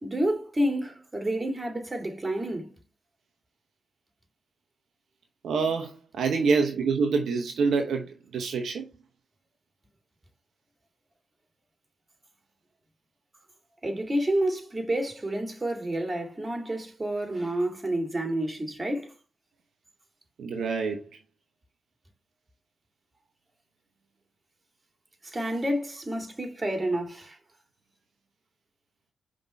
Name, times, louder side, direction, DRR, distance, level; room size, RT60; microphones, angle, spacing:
voice 1, 0.0-2.7 13.8-19.1 25.2-27.4, right 1 dB, 25° right, 2.3 m, -29 dB
voice 2, 5.4-8.9 20.4-21.0, right 4 dB, 70° right, 0.9 m, -26 dB
5.3 x 3.8 x 5.4 m
supercardioid pair, 45°, 0 cm